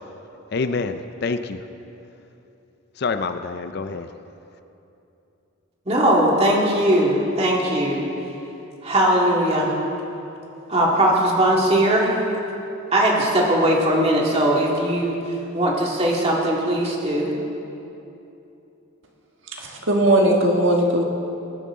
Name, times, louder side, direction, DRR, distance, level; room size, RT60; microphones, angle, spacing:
voice 1, 0.5-1.6 3.0-4.1, left 4 dB, 50° left, 9 dB, 0.4 m, -26 dB
voice 2, 5.9-8.0 8.8-9.7 10.7-12.1 12.9-15.1 15.5-17.3, right 1 dB, 30° right, -3 dB, 2.1 m, -19 dB
voice 3, 19.5-21.0, right 1 dB, 60° right, 1 dB, 1.5 m, -18 dB
20.0 x 10.5 x 3.7 m, 2.9 s
head